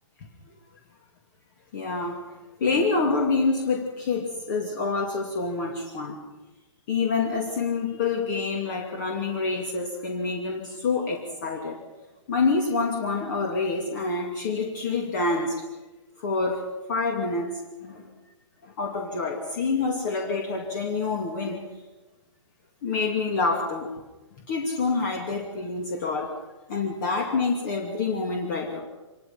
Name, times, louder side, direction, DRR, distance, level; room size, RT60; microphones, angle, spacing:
voice 1, 1.7-2.2 2.6-6.2 6.9-11.8 12.3-15.6 16.2-18.1 18.6-21.6 22.8-23.9 24.5-26.3 26.7-28.8, left 4 dB, 40° left, 3 dB, 2.6 m, -27 dB
25.5 x 21.0 x 5.8 m, 1.1 s
hypercardioid pair, 165°, 16 cm